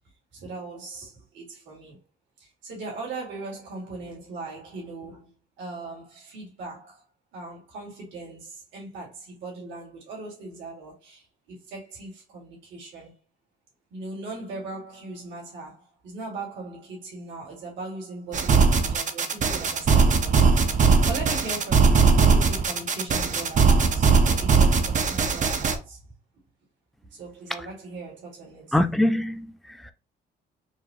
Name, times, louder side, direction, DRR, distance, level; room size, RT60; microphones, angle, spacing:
voice 1, 0.3-2.0 2.4-7.0 7.3-13.1 13.9-26.0 27.1-28.8, right 3 dB, 85° right, 2.1 m, -39 dB
sound 1, 18.3-25.8, right 4 dB, 40° right, 0.6 m, -20 dB
voice 2, 28.7-29.9, left 1 dB, ahead, 0.4 m, -24 dB
4.7 x 2.2 x 2.8 m
cardioid pair, 95°, 19 cm